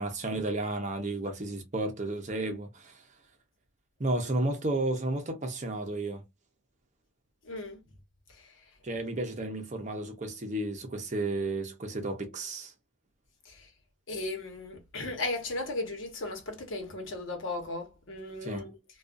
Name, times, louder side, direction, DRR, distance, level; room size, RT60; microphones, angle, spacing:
voice 1, 0.0-3.0 4.0-6.2 8.8-12.7 18.4-18.8, right 2 dB, 35° right, 0.6 m, -32 dB
voice 2, 7.4-7.8 8.3-8.5 13.4-13.7 14.1-18.7, left 2 dB, 75° left, 1.0 m, -36 dB
2.5 x 2.3 x 2.4 m
head